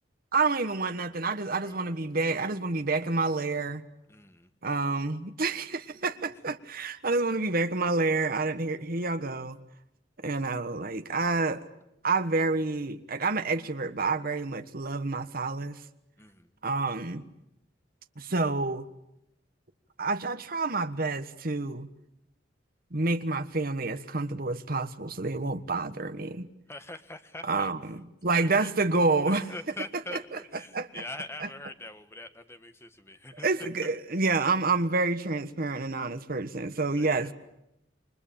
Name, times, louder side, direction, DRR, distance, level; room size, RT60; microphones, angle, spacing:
voice 1, 0.3-3.8 4.6-9.6 10.2-11.6 12.0-15.8 16.6-17.2 18.2-18.9 20.0-21.9 22.9-26.5 27.4-28.0 28.2-29.4 30.1-30.2 30.7-30.9 31.4-31.5 33.4-37.3, right 3 dB, 50° right, 9 dB, 1.4 m, -28 dB
voice 2, 1.5-2.0 4.1-4.5 16.2-16.5 26.7-27.7 28.4-28.7 29.3-33.5 33.8-33.9 36.9-37.3, left 2 dB, 15° left, 9 dB, 1.6 m, -43 dB
29.0 x 23.5 x 8.8 m, 0.86 s
head